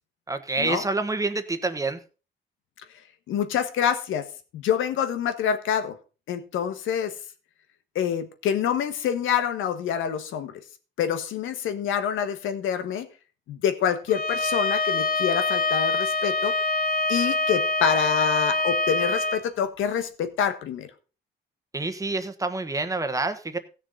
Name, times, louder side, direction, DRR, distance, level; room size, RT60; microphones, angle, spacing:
voice 1, 0.3-2.0 21.7-23.6, right 3 dB, 15° right, 1.4 m, -27 dB
voice 2, 3.3-4.3 4.5-5.9 6.3-7.1 7.9-10.5 11.0-13.1 13.5-16.6 17.1-20.9, left 8 dB, 85° left, 1.5 m, -26 dB
Bowed string instrument, 14.1-19.4, left 3 dB, 45° left, 1.2 m, -25 dB
16.0 x 6.7 x 4.1 m
cardioid pair, 90°, 20 cm